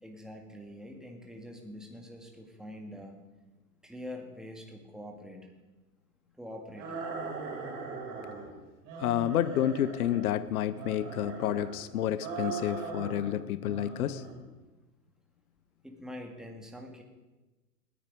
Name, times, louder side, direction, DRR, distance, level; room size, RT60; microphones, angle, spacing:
voice 1, 0.0-3.1 3.8-5.5 6.4-6.9 15.8-17.0, left 1 dB, ahead, 2 dB, 1.9 m, -44 dB
sound 1, 6.7-8.5 8.8-10.3 10.7-11.8 12.2-13.4 13.6-14.4, right 4 dB, 40° right, 5.6 m, -39 dB
voice 2, 9.0-14.2, left 11 dB, 60° left, 16 dB, 0.7 m, -30 dB
19.0 x 9.8 x 5.2 m, 1.1 s
hypercardioid pair, 115°, 49 cm